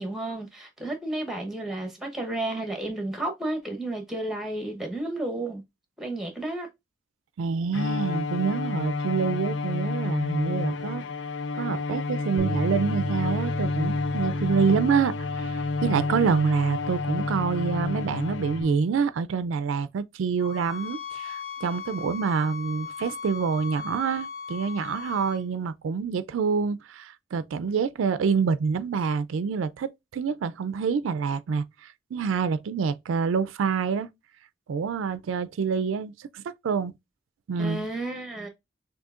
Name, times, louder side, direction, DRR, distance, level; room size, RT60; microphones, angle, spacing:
voice 1, 0.0-5.6 6.0-6.7 37.6-38.5, right 1 dB, ahead, 0.9 m, -32 dB
voice 2, 7.4-11.0 11.5-34.1 34.7-36.9 37.5-37.9, right 6 dB, 85° right, 0.4 m, -27 dB
Bowed string instrument, 7.7-18.9, left 3 dB, 70° left, 0.4 m, -30 dB
Bass guitar, 12.4-18.6, right 1 dB, 30° right, 0.6 m, -35 dB
sound 1, 20.4-25.4, left 6 dB, 30° left, 1.9 m, -38 dB
6.3 x 2.7 x 2.4 m
head